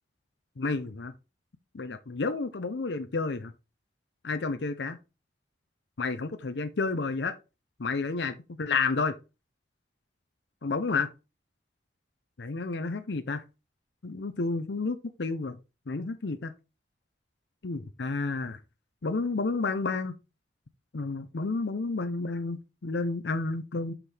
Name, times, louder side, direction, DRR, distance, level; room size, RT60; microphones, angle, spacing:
voice 1, 0.6-1.1 1.7-3.5 4.2-5.0 6.0-7.3 7.8-9.1 10.6-11.1 12.4-13.4 14.0-15.6 15.9-16.5 17.6-18.6 19.0-20.1 20.9-23.9, left 3 dB, 70° left, 0.6 m, -30 dB
6.0 x 5.8 x 3.3 m
head